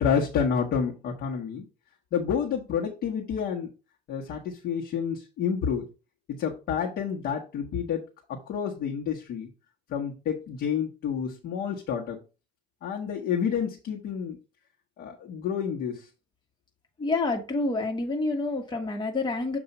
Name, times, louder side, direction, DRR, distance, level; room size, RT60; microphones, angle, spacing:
voice 1, 0.0-1.7 2.1-3.7 4.1-5.9 6.4-8.0 8.3-9.5 9.9-12.2 12.8-14.4 15.0-16.1, left 7 dB, 65° left, 1.2 m, -29 dB
voice 2, 17.0-19.6, left 3 dB, 25° left, 1.4 m, -28 dB
7.0 x 2.7 x 5.3 m
cardioid pair, 110°, 17 cm